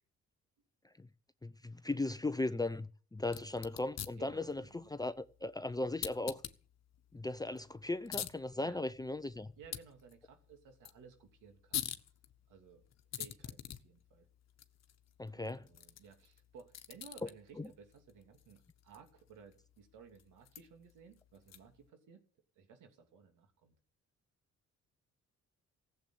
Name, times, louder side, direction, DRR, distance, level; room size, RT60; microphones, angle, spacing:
voice 1, 1.4-6.4 7.1-9.5 15.2-15.6 17.6-17.7, left 2 dB, 10° left, 0.7 m, -37 dB
sound 1, 3.2-21.9, left 10 dB, 60° left, 1.2 m, -48 dB
voice 2, 4.2-4.9 8.6-8.8 9.6-11.9 12.5-12.8 13.1-14.3 15.3-22.2 22.5-23.7, right 6 dB, 85° right, 3.0 m, -58 dB
15.5 x 7.8 x 8.5 m
cardioid pair, 90°, 30 cm